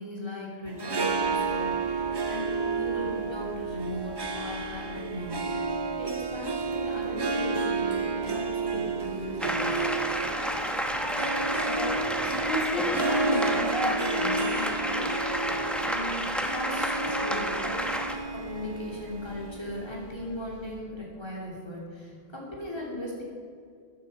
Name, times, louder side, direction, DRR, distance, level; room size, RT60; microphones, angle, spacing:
voice 1, 0.0-5.5 6.0-10.1 15.8-23.2, left 1 dB, 25° left, -4 dB, 3.2 m, -38 dB
Harp, 0.7-20.0, right 4 dB, 30° right, 0.5 m, -31 dB
sound 1, 1.1-20.8, right 1 dB, 15° right, 2.8 m, -50 dB
sound 2, 9.4-18.2, equal, ahead, 0.8 m, -30 dB
voice 2, 11.7-12.0 12.3-15.1, left 1 dB, 60° left, -2 dB, 1.9 m, -34 dB
14.0 x 9.7 x 5.5 m, 2.3 s
omnidirectional pair, 1.1 m